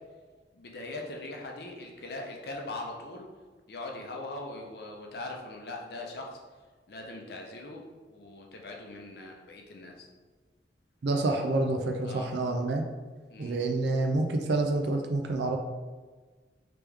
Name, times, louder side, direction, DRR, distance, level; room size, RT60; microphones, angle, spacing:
voice 1, 0.5-3.2 3.7-6.4 6.9-7.8 8.1-10.1 12.1-12.3 13.3-13.6, left 2 dB, 60° left, 1 dB, 0.6 m, -41 dB
voice 2, 11.0-12.8 13.4-15.6, right 2 dB, 70° right, 3 dB, 0.4 m, -28 dB
3.4 x 2.9 x 3.4 m, 1.4 s
head